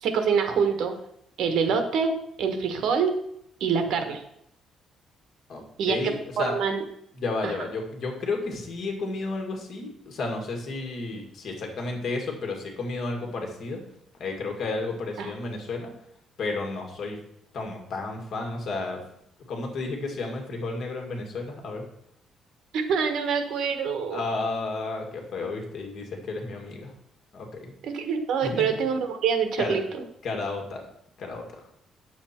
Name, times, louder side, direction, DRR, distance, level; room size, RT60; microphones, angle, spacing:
voice 1, 0.0-0.9 1.4-3.1 3.6-4.2 5.8-6.0 6.4-6.8 7.4-7.5 15.2-15.3 22.7-24.2 27.8-30.0, right 6 dB, 70° right, 7 dB, 1.3 m, -25 dB
voice 2, 5.5-6.5 7.2-13.8 14.2-15.9 16.4-17.2 17.5-19.0 19.5-21.9 24.1-26.9 27.3-27.7 28.4-28.7 29.6-29.8 30.2-30.8 31.2-31.4, left 3 dB, 50° left, 2 dB, 2.2 m, -32 dB
9.0 x 7.2 x 4.4 m, 0.73 s
cardioid pair, 155°, 0 cm